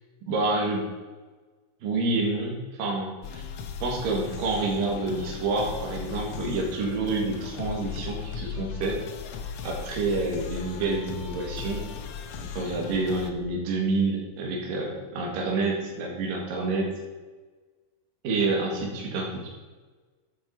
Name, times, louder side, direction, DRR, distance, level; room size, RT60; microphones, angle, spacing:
voice 1, 0.2-0.8 1.8-3.4 3.8-9.0 9.6-11.9 12.5-16.9 18.2-19.5, right 3 dB, 70° right, 0 dB, 3.4 m, -28 dB
sound 1, 3.2-13.3, left 6 dB, 75° left, 1.5 m, -37 dB
10.5 x 7.6 x 4.7 m, 1.3 s
omnidirectional pair, 4.1 m